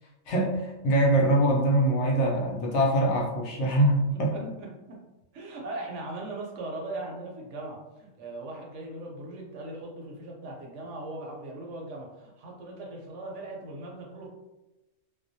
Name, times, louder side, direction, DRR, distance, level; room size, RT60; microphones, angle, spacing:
voice 1, 0.3-4.3, right 1 dB, 70° left, -2 dB, 0.8 m, -23 dB
voice 2, 4.1-5.0 5.3-14.3, right 2 dB, 70° right, -1 dB, 0.9 m, -39 dB
2.3 x 2.0 x 2.6 m, 1.0 s
omnidirectional pair, 1.3 m